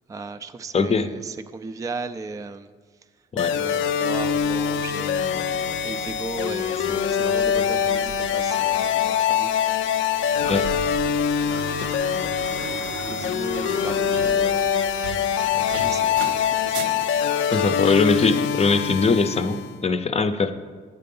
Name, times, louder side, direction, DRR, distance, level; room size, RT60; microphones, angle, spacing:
voice 1, 0.1-2.7 3.5-9.5 11.1-12.2 12.6-14.7 15.0-16.9, right 4 dB, 15° right, 9 dB, 0.4 m, -37 dB
voice 2, 0.7-1.1 3.3-3.6 10.5-10.7 11.8-11.9 17.5-20.5, left 4 dB, 30° left, 10 dB, 0.6 m, -21 dB
sound 1, 3.4-19.8, left 8 dB, 75° left, 0.5 m, -24 dB
sound 2, 4.1-17.1, right 6 dB, 85° right, 0.7 m, -39 dB
9.4 x 6.7 x 5.4 m, 1.5 s
cardioid pair, 90°, 20 cm